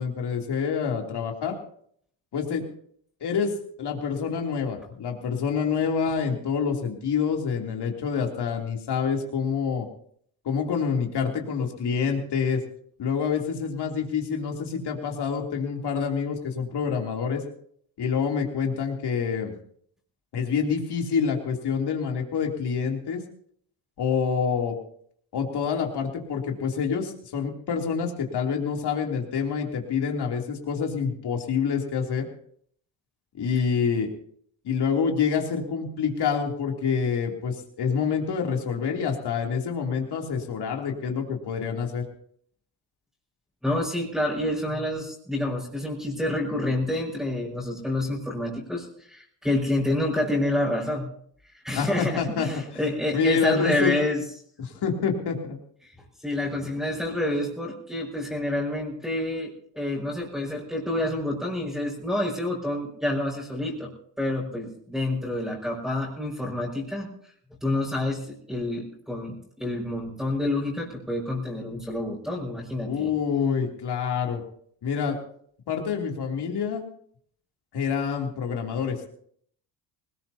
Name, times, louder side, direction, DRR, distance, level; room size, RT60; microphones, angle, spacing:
voice 1, 0.0-1.6 2.3-2.6 3.2-3.5 3.8-9.9 10.4-12.6 13.0-17.4 18.0-19.5 20.3-23.2 24.0-24.8 25.3-32.3 33.4-34.1 34.6-42.0 51.7-52.8 53.1-53.9 54.6-55.6 72.9-74.4 74.8-75.2 75.7-76.8 77.7-79.1, left 6 dB, 55° left, 1 dB, 3.1 m, -27 dB
voice 2, 43.6-51.1 51.5-54.2 56.2-63.9 64.2-67.1 67.6-73.1, left 1 dB, ahead, -6 dB, 5.6 m, -28 dB
20.0 x 19.5 x 2.9 m, 0.62 s
cardioid pair, 90°, 46 cm